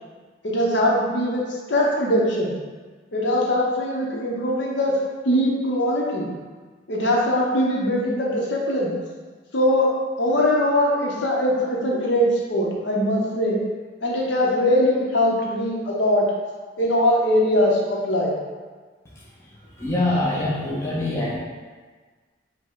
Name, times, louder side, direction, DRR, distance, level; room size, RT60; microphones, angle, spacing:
voice 1, 0.4-2.5 3.1-4.9 5.2-6.3 6.9-8.9 9.5-9.9 10.2-13.6 14.0-16.3 16.8-18.3, left 1 dB, 70° left, -3 dB, 0.8 m, -21 dB
voice 2, 19.8-21.4, left 1 dB, 15° left, -6 dB, 0.6 m, -24 dB
5.2 x 2.2 x 3.7 m, 1.4 s
head